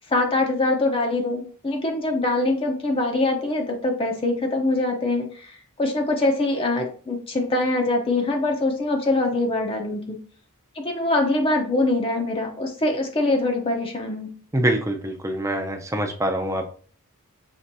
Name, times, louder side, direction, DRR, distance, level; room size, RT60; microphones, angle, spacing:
voice 1, 0.1-5.5 5.8-10.2 10.8-14.3, left 2 dB, 25° left, 2 dB, 0.6 m, -23 dB
voice 2, 14.5-16.7, right 1 dB, 15° right, 4 dB, 0.6 m, -25 dB
5.9 x 3.1 x 2.7 m, 0.42 s
head